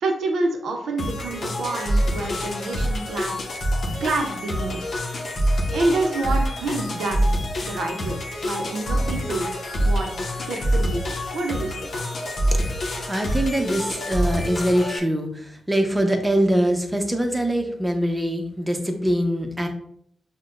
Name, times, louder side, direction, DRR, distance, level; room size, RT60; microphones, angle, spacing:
voice 1, 0.0-3.4 4.0-4.9 5.7-7.3 7.6-8.2 8.4-9.5 9.8-10.1 10.5-11.0 11.3-11.9, right 2 dB, 85° right, 2 dB, 0.7 m, -27 dB
sound 1, 1.0-15.0, equal, 65° left, 0.8 m, -26 dB
voice 2, 12.5-12.8 13.1-19.7, right 1 dB, 15° right, 4 dB, 0.8 m, -23 dB
5.8 x 2.2 x 2.5 m, 0.69 s
cardioid pair, 65°, 0 cm